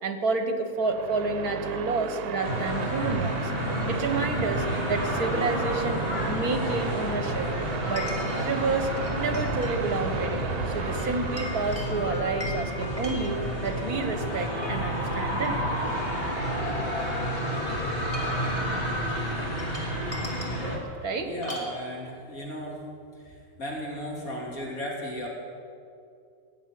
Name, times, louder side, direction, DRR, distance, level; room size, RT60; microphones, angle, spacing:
voice 1, 0.0-3.5 3.9-7.5 7.9-8.1 8.4-15.7 21.0-21.3, right 3 dB, 70° right, 7 dB, 1.9 m, -29 dB
sound 1, 0.7-12.3, right 9 dB, 85° right, 1.3 m, -36 dB
sound 2, 2.4-20.8, equal, 35° left, 2.9 m, -30 dB
Chink clink, 8.0-8.5 9.0-9.8 10.1-10.3 11.0-13.8 14.3-14.9 15.4-15.5 15.8-17.2 17.9-18.5 19.4-20.6 21.4-21.8, left 1 dB, 20° left, 2.8 m, -40 dB
voice 2, 21.2-22.8 23.2-25.3, equal, 65° left, -3 dB, 3.8 m, -35 dB
17.5 x 8.0 x 9.5 m, 2.4 s
omnidirectional pair, 1.6 m